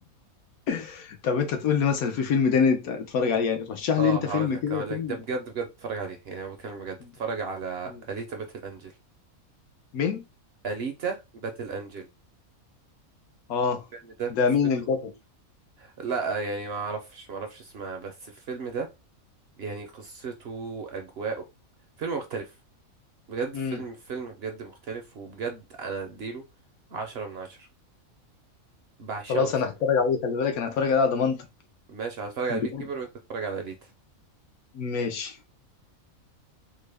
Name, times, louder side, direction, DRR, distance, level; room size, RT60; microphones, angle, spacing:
voice 1, 0.7-5.2 7.0-7.1 7.9-8.0 9.9-10.2 13.5-13.8 14.3-15.1 23.5-23.8 29.3-31.4 32.5-32.8 34.7-35.5, left 6 dB, 80° left, 1.2 m, -25 dB
voice 2, 4.0-8.9 10.6-12.1 14.0-14.3 14.8-14.9 15.8-18.9 19.6-21.4 22.0-22.5 23.3-26.4 26.9-27.7 29.0-29.5 31.9-33.7, right 4 dB, 60° right, 0.7 m, -34 dB
3.7 x 2.1 x 3.3 m
omnidirectional pair, 1.5 m